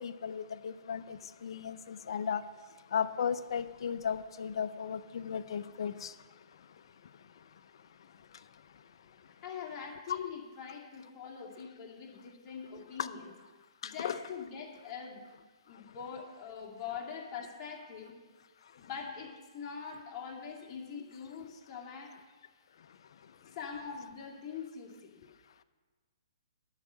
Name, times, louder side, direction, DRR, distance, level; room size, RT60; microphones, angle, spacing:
voice 1, 0.0-2.4 2.9-6.1 13.0-13.1 13.8-14.2, left 7 dB, 60° left, 0.6 m, -35 dB
voice 2, 9.2-13.3 13.8-15.2 15.7-18.1 18.8-22.1 23.4-25.2, left 6 dB, 30° left, 2.3 m, -43 dB
11.0 x 5.7 x 7.5 m
hypercardioid pair, 130°, 3 cm